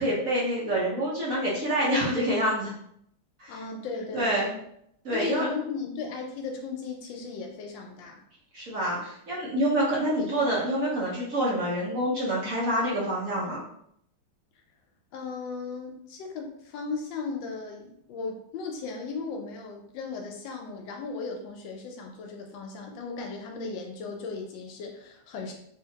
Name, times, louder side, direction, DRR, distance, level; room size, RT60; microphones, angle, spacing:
voice 1, 0.0-2.7 3.4-3.5 4.1-4.5 5.0-5.5 8.5-13.6, right 1 dB, 50° right, -6 dB, 1.2 m, -27 dB
voice 2, 3.5-4.6 5.1-8.2 15.1-25.5, left 4 dB, 75° left, 2 dB, 1.3 m, -36 dB
3.5 x 2.8 x 2.8 m, 0.70 s
omnidirectional pair, 2.2 m